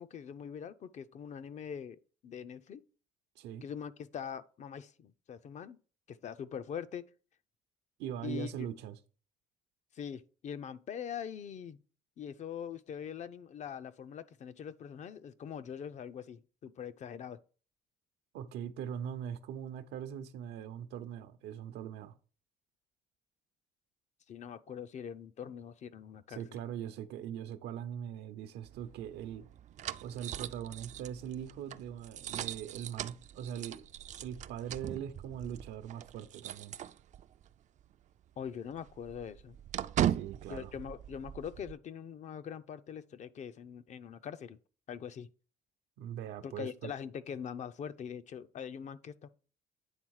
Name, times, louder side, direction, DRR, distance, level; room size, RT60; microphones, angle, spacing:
voice 1, 0.0-2.8 3.6-5.8 6.1-7.0 8.2-8.7 9.9-11.8 12.2-17.4 24.3-26.6 38.4-39.6 40.5-44.6 44.9-45.3 46.4-49.3, left 8 dB, 45° left, 0.5 m, -43 dB
voice 2, 3.4-3.7 8.0-9.0 18.3-22.2 26.3-29.5 30.0-33.9 34.2-36.8 40.0-40.7 46.0-46.9, right 9 dB, 85° right, 0.7 m, -41 dB
sound 1, 28.6-37.5 37.8-37.9 38.3-41.7, right 11 dB, 45° right, 0.4 m, -39 dB
8.9 x 3.5 x 4.7 m
cardioid pair, 110°, 17 cm